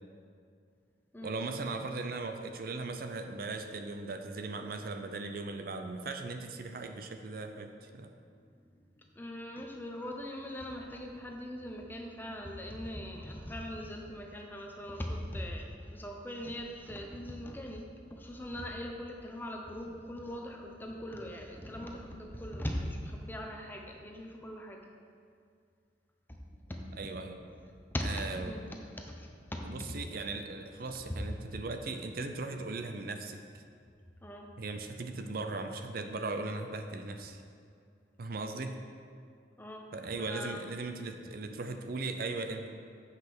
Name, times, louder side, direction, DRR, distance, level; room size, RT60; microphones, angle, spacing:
voice 1, 1.2-8.1 27.0-27.4 28.0-28.5 29.6-33.6 34.6-37.4 38.2-38.8 39.9-42.7, right 3 dB, 55° right, 6 dB, 0.5 m, -38 dB
voice 2, 8.4-24.9 26.3-27.1 27.9-29.9 30.8-30.9 31.2-31.3 34.2-34.5 39.6-40.7, equal, 10° left, 1 dB, 0.8 m, -41 dB
8.1 x 5.3 x 6.0 m, 2.3 s
head